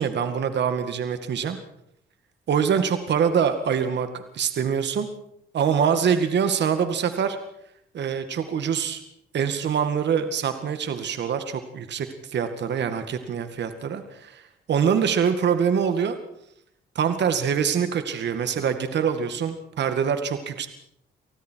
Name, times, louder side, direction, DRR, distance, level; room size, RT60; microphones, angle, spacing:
voice 1, 0.0-1.6 2.5-5.1 5.5-7.4 7.9-9.0 9.3-16.2 17.0-20.7, right 7 dB, 60° right, 8 dB, 2.1 m, -24 dB
29.0 x 19.5 x 4.7 m, 0.72 s
cardioid pair, 90°, 20 cm